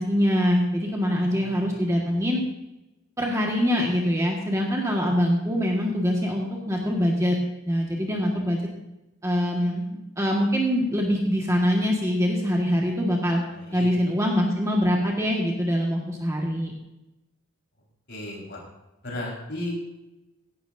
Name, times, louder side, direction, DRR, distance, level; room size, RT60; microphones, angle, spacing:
voice 1, 0.0-2.4 3.2-7.4 7.6-8.6 9.2-9.8 10.2-13.4 13.7-16.7, equal, 15° right, -1 dB, 1.7 m, -24 dB
voice 2, 1.3-2.2 13.5-13.9 18.1-18.6 19.0-19.7, left 1 dB, 50° left, -2 dB, 4.8 m, -36 dB
17.0 x 12.5 x 2.7 m, 0.97 s
head